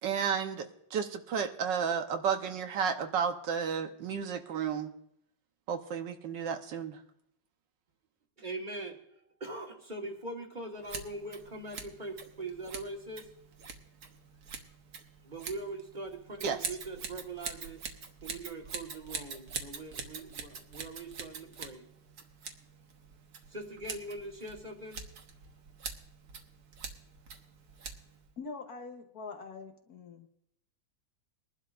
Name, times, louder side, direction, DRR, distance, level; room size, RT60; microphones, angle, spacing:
voice 1, 0.0-4.9 5.7-7.0 16.4-16.6, right 7 dB, 80° right, 6 dB, 1.6 m, -32 dB
voice 2, 8.4-9.0 9.4-13.3 15.2-17.8 18.2-21.9 23.5-25.0, right 2 dB, 25° right, 1 dB, 1.6 m, -42 dB
Scissors, 10.8-28.3, right 5 dB, 60° right, 1.6 m, -45 dB
voice 3, 28.4-30.3, left 4 dB, 60° left, 5 dB, 1.5 m, -44 dB
22.0 x 11.5 x 2.5 m, 0.75 s
omnidirectional pair, 2.0 m